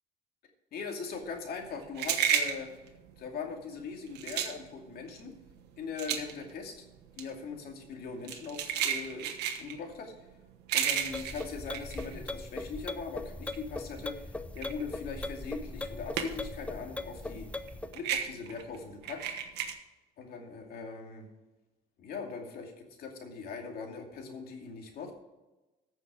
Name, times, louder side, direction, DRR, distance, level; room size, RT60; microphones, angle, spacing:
voice 1, 0.7-2.7 3.2-5.3 5.8-6.8 7.2-10.3 10.7-17.6 17.9-19.4 20.2-21.2 22.0-25.1, left 5 dB, 65° left, 2 dB, 2.5 m, -41 dB
sound 1, 1.2-12.8 13.2-16.6 16.9-19.7, right 8 dB, 85° right, 1.3 m, -33 dB
sound 2, 11.1-18.0, left 2 dB, 10° left, 0.6 m, -40 dB
14.5 x 6.3 x 4.9 m, 1.1 s
cardioid pair, 110°, 17 cm